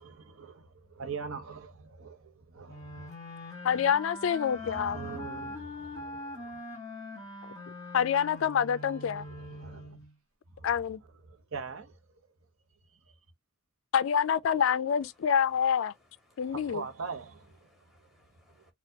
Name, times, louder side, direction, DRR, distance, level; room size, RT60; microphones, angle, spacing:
voice 1, 0.0-3.1 4.6-6.6 9.1-10.0 10.6-10.7 11.2-12.0 13.1-13.2 16.4-17.7 18.5-18.7, right 5 dB, 75° right, 0.8 m, -42 dB
sound 1, 2.7-10.1, left 1 dB, 15° left, 1.5 m, -42 dB
voice 2, 3.6-5.0 7.9-9.2 10.6-11.0 13.9-15.9 16.4-16.8, left 8 dB, 65° left, 0.3 m, -27 dB
voice 3, 15.0-17.0 17.6-18.7, left 3 dB, ahead, 1.6 m, -65 dB
4.3 x 2.3 x 2.7 m
head